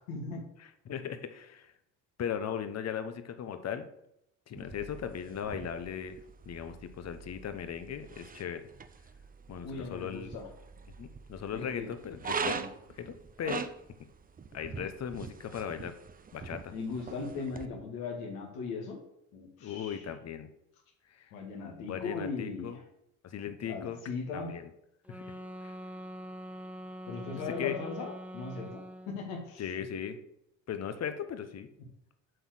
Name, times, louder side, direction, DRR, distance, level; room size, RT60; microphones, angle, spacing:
voice 1, 0.1-0.4 9.6-10.5 11.5-11.9 12.5-12.7 16.7-19.0 19.3-20.0 21.3-22.8 23.7-24.6 27.1-29.6, left 4 dB, 80° left, 2 dB, 1.9 m, -38 dB
voice 2, 0.8-1.7 2.2-3.9 4.5-6.2 6.4-8.7 9.5-10.3 11.0-12.6 12.9-13.6 14.5-16.0 16.3-16.7 19.6-20.5 21.2-21.3 21.8-22.8 23.2-24.0 24.3-24.7 25.1-25.3 25.6-25.8 27.6-27.8 29.6-30.2 30.7-31.7, left 8 dB, 45° left, 10 dB, 1.0 m, -38 dB
sound 1, 4.6-17.7, right 5 dB, 25° right, 0.6 m, -42 dB
sound 2, 25.1-29.3, equal, 5° right, 1.2 m, -44 dB
7.8 x 4.0 x 6.4 m, 0.78 s
supercardioid pair, 70°, 36 cm